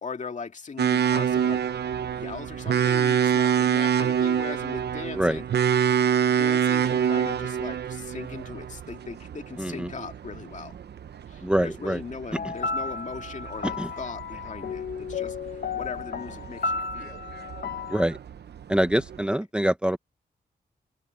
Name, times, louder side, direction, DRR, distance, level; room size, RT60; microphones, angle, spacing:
voice 1, 0.0-1.6 2.1-5.4 6.2-10.8 11.3-17.2 19.3-19.4, left 5 dB, 45° left, 2.2 m, -39 dB
sound 1, 0.8-19.2, right 8 dB, 70° right, 0.8 m, -27 dB
voice 2, 9.6-9.9 11.4-12.0 12.4-12.5 13.8-13.9 17.9-18.2 18.7-20.0, right 1 dB, 5° right, 0.9 m, -25 dB
sound 2, 12.3-18.0, left 5 dB, 60° left, 1.3 m, -33 dB
wide cardioid pair, 130°, 18 cm